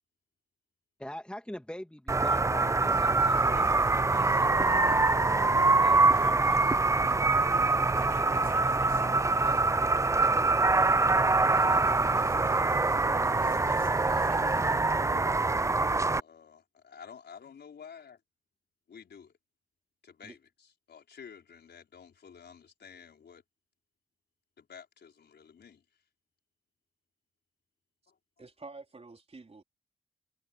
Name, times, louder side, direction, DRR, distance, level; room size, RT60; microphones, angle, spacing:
voice 1, 1.0-2.9 5.2-7.2 7.9-10.5, left 1 dB, 5° left, 1.9 m, -45 dB
sound 1, 2.1-16.2, right 3 dB, 15° right, 0.5 m, -24 dB
voice 2, 2.5-5.2 11.6-11.9 16.2-18.2 18.9-19.3 20.0-23.4 24.6-25.8 28.1-28.2, left 7 dB, 65° left, 5.2 m, -50 dB
sound 2, 2.9-14.9, right 7 dB, 50° right, 0.9 m, -48 dB
voice 3, 28.4-29.6, right 3 dB, 35° right, 4.0 m, -48 dB
cardioid pair, 70°, 18 cm